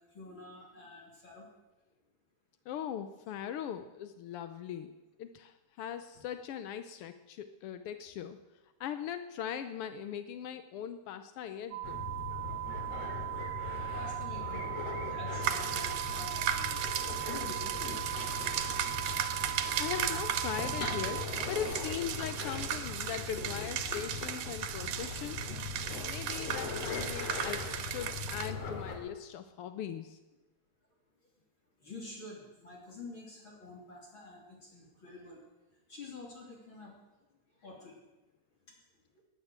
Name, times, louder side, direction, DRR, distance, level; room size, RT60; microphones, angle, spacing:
voice 1, 0.1-1.5 13.9-16.8 17.2-18.0 18.7-19.1 19.4-19.5 25.1-25.2 26.1-26.3 31.8-35.4 35.9-37.0 37.6-38.0, left 2 dB, 40° left, -1 dB, 3.6 m, -48 dB
voice 2, 2.7-4.9 5.2-8.4 8.8-12.1 19.8-25.4 25.8-30.2, left 9 dB, 75° left, 9 dB, 1.3 m, -40 dB
sound 1, 11.7-21.3, right 20 dB, 55° right, 3.7 m, -39 dB
sound 2, 11.8-29.0, left 4 dB, 60° left, 3.4 m, -40 dB
sound 3, 15.4-28.5, right 9 dB, 80° right, 2.4 m, -36 dB
19.0 x 10.5 x 7.4 m, 1.1 s
omnidirectional pair, 3.4 m